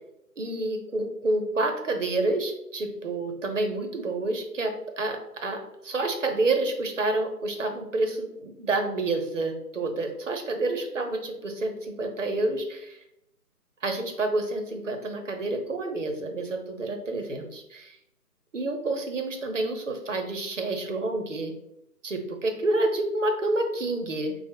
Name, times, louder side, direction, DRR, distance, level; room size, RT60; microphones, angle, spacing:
voice 1, 0.4-13.0 13.8-18.0 18.5-21.5 22.0-24.3, right 2 dB, 55° right, 5 dB, 0.5 m, -28 dB
3.2 x 2.0 x 3.5 m, 0.83 s
hypercardioid pair, 175°, 47 cm